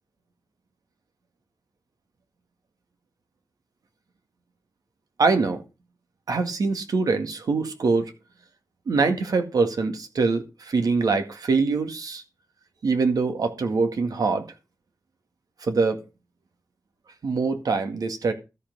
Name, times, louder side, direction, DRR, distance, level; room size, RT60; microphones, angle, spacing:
voice 1, 5.2-5.6 6.3-8.1 8.9-12.2 12.8-14.5 15.6-16.0 17.2-18.3, right 4 dB, 85° right, 1.9 m, -24 dB
13.5 x 5.6 x 6.6 m
cardioid pair, 65°, 6 cm